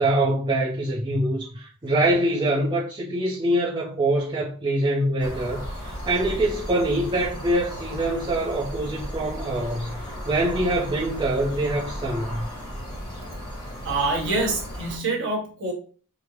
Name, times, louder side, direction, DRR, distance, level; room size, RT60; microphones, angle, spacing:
voice 1, 0.0-12.5, right 1 dB, 20° right, 0.6 m, -24 dB
sound 1, 5.2-15.0, equal, 20° left, 1.4 m, -35 dB
voice 2, 13.8-15.7, right 2 dB, 55° right, 1.2 m, -26 dB
5.0 x 2.0 x 3.0 m
head